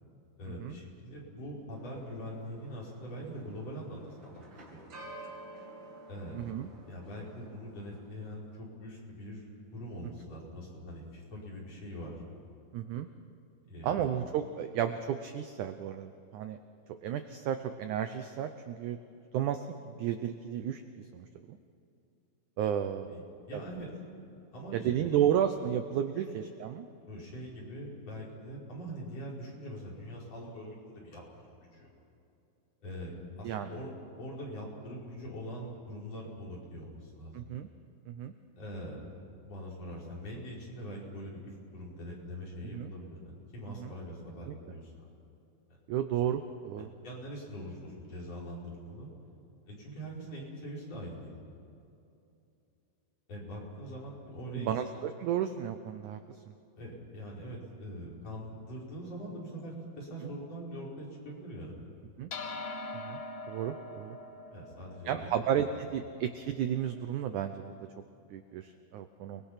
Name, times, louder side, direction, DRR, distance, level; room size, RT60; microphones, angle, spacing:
voice 1, 0.4-4.9 6.1-6.4 6.9-9.5 9.7-12.1 13.7-14.0 23.1-23.2 23.5-23.9 24.5-25.2 26.2-26.3 27.1-31.9 32.8-37.4 38.6-39.0 39.4-45.1 46.8-49.1 49.7-51.3 53.3-54.7 56.8-61.8 64.5-65.3, equal, 40° left, -5 dB, 6.1 m, -43 dB
sound 1, 1.7-8.2, right 2 dB, 35° right, 2.9 m, -51 dB
voice 2, 6.3-6.7 12.7-13.1 13.8-16.6 17.0-19.0 19.3-21.6 22.6-23.1 23.5-23.6 24.7-26.9 33.4-33.8 37.3-37.7 38.1-38.3 42.7-42.9 43.7-43.9 44.5-44.8 45.9-46.9 54.5-56.4 60.2-60.3 62.2-62.3 62.9-63.2 63.5-64.2 65.0-67.9 68.3-69.4, right 9 dB, 75° right, 8 dB, 1.8 m, -33 dB
sound 2, 62.3-67.0, left 2 dB, 80° left, 1.0 m, -43 dB
30.0 x 20.5 x 5.8 m, 2.7 s
omnidirectional pair, 4.4 m